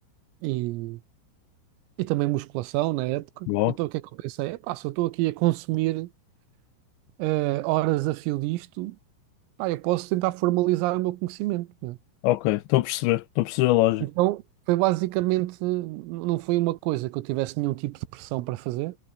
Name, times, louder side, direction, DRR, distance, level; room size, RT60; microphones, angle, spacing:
voice 1, 0.4-1.0 2.0-6.1 7.2-9.0 9.6-12.0 14.0-14.4 14.7-19.0, right 18 dB, 85° right, 3.7 m, -27 dB
voice 2, 3.5-3.8 12.2-14.1, left 17 dB, 80° left, 2.7 m, -23 dB
omnidirectional pair, 5.9 m